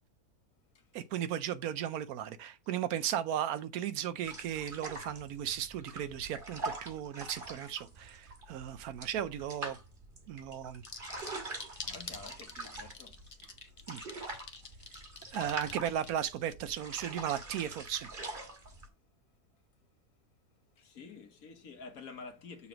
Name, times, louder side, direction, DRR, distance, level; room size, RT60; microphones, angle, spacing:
voice 1, 0.9-9.8 10.3-10.8 13.9-14.0 15.3-18.1, right 10 dB, 80° right, 1.1 m, -36 dB
sound 1, 4.2-18.9, right 2 dB, 35° right, 1.5 m, -44 dB
sound 2, 10.8-16.4, left 4 dB, 40° left, 0.4 m, -45 dB
voice 2, 11.8-13.2 20.8-22.7, left 4 dB, 70° left, 1.5 m, -49 dB
6.9 x 3.2 x 5.0 m
omnidirectional pair, 1.6 m